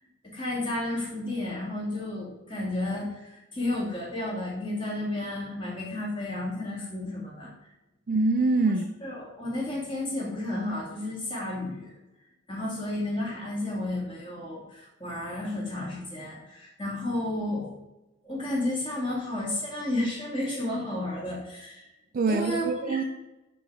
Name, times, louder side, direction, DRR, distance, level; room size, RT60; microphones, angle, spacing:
voice 1, 0.3-7.5 9.0-11.9 12.5-17.7 18.2-21.9 22.3-23.0, left 1 dB, 25° left, 2.3 m, -32 dB
voice 2, 8.1-8.9 22.1-23.0, right 3 dB, 45° right, 0.4 m, -24 dB
9.0 x 3.4 x 4.8 m
head